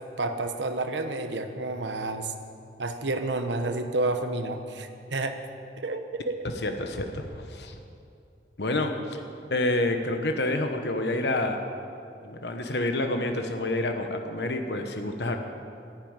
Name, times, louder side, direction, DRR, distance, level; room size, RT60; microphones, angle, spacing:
voice 1, 0.2-2.3 2.8-5.4 5.8-6.4, right 2 dB, 85° right, 7 dB, 1.1 m, -30 dB
voice 2, 6.4-7.8 8.6-9.2 9.5-11.6 12.2-15.4, left 2 dB, 70° left, 5 dB, 1.2 m, -28 dB
11.5 x 11.5 x 8.9 m, 2.5 s
head